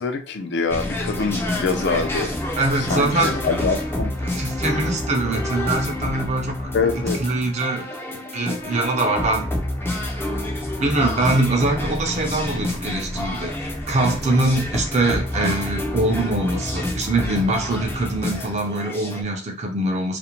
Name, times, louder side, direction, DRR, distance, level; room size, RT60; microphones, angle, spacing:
voice 1, 0.0-2.3 2.9-4.1 6.7-7.2, left 4 dB, 65° left, 0.5 m, -24 dB
sound 1, 0.7-19.2, left 1 dB, 15° left, 0.4 m, -28 dB
voice 2, 2.6-3.3 4.2-9.5 9.8-10.4 10.8-20.2, right 2 dB, 40° right, 0.5 m, -23 dB
2.5 x 2.1 x 2.9 m
head